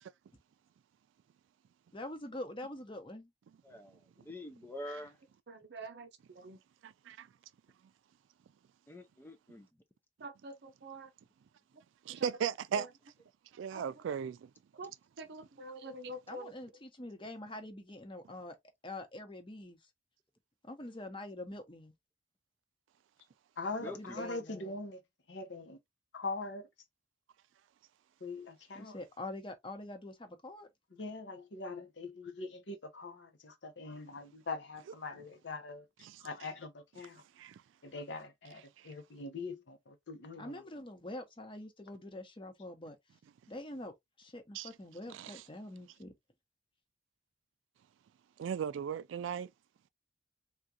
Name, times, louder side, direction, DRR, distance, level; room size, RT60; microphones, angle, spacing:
voice 1, 1.9-3.3 16.3-18.6 18.8-19.8 20.6-21.9 23.8-24.7 28.8-30.7 40.4-43.0 43.5-46.1, left 1 dB, 25° left, 0.9 m, -45 dB
voice 2, 3.6-5.2 8.9-9.7 23.8-24.2, left 1 dB, 10° left, 0.4 m, -46 dB
voice 3, 5.5-6.6 10.2-11.1 11.7-11.8 12.1-12.9 13.7-14.0 14.7-16.5, right 1 dB, 60° right, 0.7 m, -46 dB
voice 4, 12.1-12.9 13.6-14.5 37.4-37.5 44.5-44.7 45.1-45.4 48.4-49.5, right 8 dB, 85° right, 0.3 m, -36 dB
voice 5, 23.6-25.0 25.3-25.8 26.1-26.7 28.2-29.0 30.9-35.8 36.2-37.2 37.8-40.6, left 3 dB, 65° left, 0.8 m, -42 dB
3.6 x 2.3 x 2.7 m
head